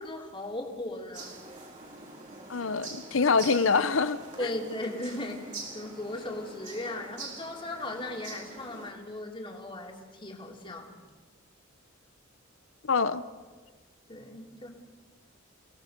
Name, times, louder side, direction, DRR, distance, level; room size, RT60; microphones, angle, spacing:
voice 1, 0.0-1.3 4.4-11.0 14.1-14.7, left 1 dB, 25° left, 0 dB, 3.0 m, -37 dB
sound 1, 1.1-8.9, right 3 dB, 40° right, 4.6 m, -45 dB
voice 2, 2.5-4.5 12.8-13.2, left 4 dB, 75° left, 13 dB, 0.8 m, -25 dB
29.0 x 18.0 x 5.4 m, 1.4 s
head